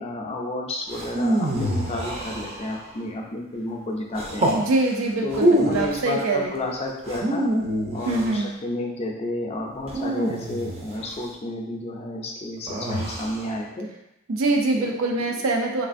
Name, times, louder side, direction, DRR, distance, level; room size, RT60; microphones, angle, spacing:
voice 1, 0.0-4.5 5.2-7.5 7.9-13.9 14.8-14.9 15.2-15.3, left 1 dB, 30° left, 0 dB, 0.4 m, -31 dB
sound 1, 0.9-2.9 4.1-4.6 5.3-6.0 7.0-8.4 9.9-11.1 12.7-13.4, right 1 dB, 30° right, 0.5 m, -25 dB
voice 2, 4.5-6.5 8.1-8.5 14.3-15.9, right 2 dB, 90° right, 2 dB, 0.5 m, -24 dB
3.2 x 2.4 x 2.5 m, 0.85 s
head